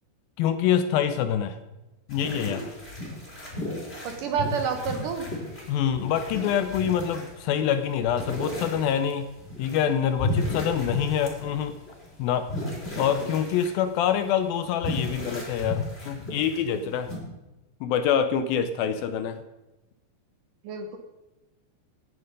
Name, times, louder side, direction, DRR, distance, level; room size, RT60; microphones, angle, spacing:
voice 1, 0.4-1.6 2.1-2.7 5.7-9.3 9.6-11.8 12.2-12.5 13.0-17.1 17.8-19.4, left 8 dB, 80° left, 10 dB, 2.3 m, -26 dB
sound 1, 2.1-17.2, left 1 dB, 15° left, 4.2 m, -35 dB
voice 2, 4.0-5.3 16.7-16.9 20.6-21.0, right 6 dB, 65° right, 6 dB, 2.4 m, -29 dB
17.5 x 9.6 x 5.3 m, 1.0 s
omnidirectional pair, 4.6 m